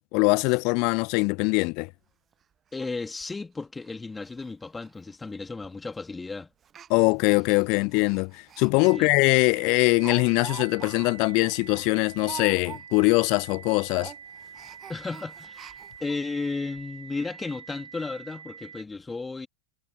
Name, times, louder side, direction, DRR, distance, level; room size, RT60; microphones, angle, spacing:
voice 1, 0.1-1.9 6.9-14.1, left 30 dB, 45° left, 0.6 m, -22 dB
Speech, 1.9-2.0 2.3-2.4 2.8-2.9 3.2-3.4 3.8-4.0 4.2-4.5 4.8-4.9 5.6-5.9 6.6-8.7 9.1-9.2 9.5-13.1 13.4-13.6 13.9-16.2 16.8-16.9 17.1-17.2, right 8 dB, 25° right, 0.8 m, -44 dB
voice 2, 2.7-6.5 8.9-9.1 14.9-19.5, left 3 dB, 10° left, 2.8 m, -34 dB
sound 1, 8.8-18.8, right 7 dB, 70° right, 3.8 m, -46 dB
figure-of-eight pair, 90°, 0 cm